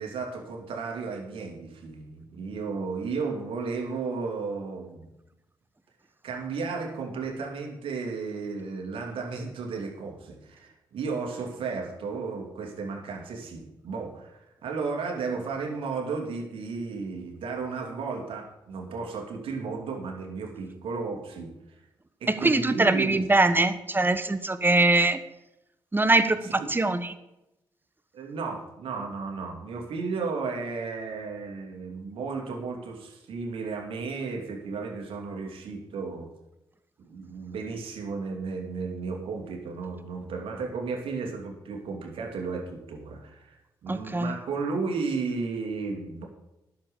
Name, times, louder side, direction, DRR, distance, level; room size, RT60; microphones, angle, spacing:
voice 1, 0.0-5.1 6.2-21.5 22.2-23.4 26.4-26.7 28.1-36.3 37.0-43.6 43.8-46.2, right 4 dB, 80° right, 1 dB, 2.7 m, -34 dB
voice 2, 22.3-25.2 25.9-27.1 43.9-44.3, right 2 dB, 20° right, 11 dB, 1.2 m, -22 dB
10.5 x 7.2 x 7.0 m, 0.92 s
supercardioid pair, 50°, 9 cm